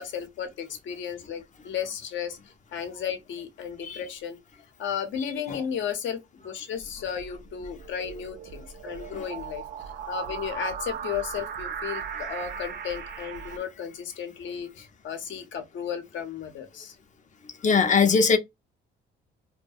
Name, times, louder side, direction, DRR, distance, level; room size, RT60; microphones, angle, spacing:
voice 1, 0.0-2.4 2.7-4.4 4.8-9.6 10.1-17.0, left 8 dB, 70° left, 0.8 m, -34 dB
sound 1, 6.8-13.6, right 7 dB, 60° right, 0.5 m, -37 dB
voice 2, 17.6-18.4, left 5 dB, 40° left, 0.5 m, -21 dB
2.3 x 2.1 x 2.5 m
cardioid pair, 90°, 20 cm